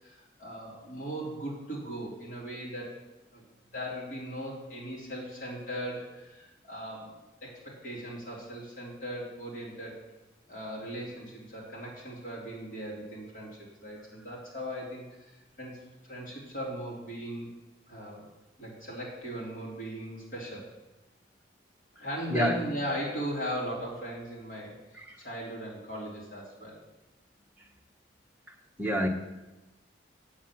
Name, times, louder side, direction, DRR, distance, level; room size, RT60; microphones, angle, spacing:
voice 1, 0.0-3.0 3.3-3.4 3.7-7.1 7.4-10.0 10.5-17.5 17.9-18.2 18.6-20.6 22.0-26.8, equal, 40° left, -5 dB, 3.6 m, -38 dB
voice 2, 22.0-22.6 24.9-25.3 27.6-27.7 28.5-29.1, equal, 10° right, 0 dB, 1.1 m, -31 dB
8.7 x 7.2 x 7.5 m, 1.1 s
head